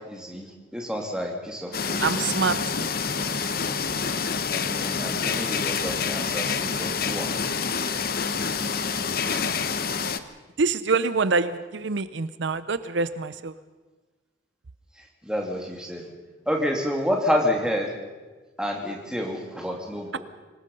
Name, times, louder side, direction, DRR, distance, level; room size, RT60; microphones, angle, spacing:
voice 1, 0.1-0.5 0.7-2.0 4.5-7.3 15.2-16.1 16.5-17.9 18.6-20.2, equal, 5° right, 0 dB, 2.7 m, -29 dB
sound 1, 1.7-10.2, left 5 dB, 50° left, 0.9 m, -27 dB
voice 2, 2.0-2.6 10.6-13.5 20.1-20.2, right 4 dB, 70° right, 13 dB, 0.6 m, -25 dB
25.0 x 19.5 x 5.5 m, 1.3 s
head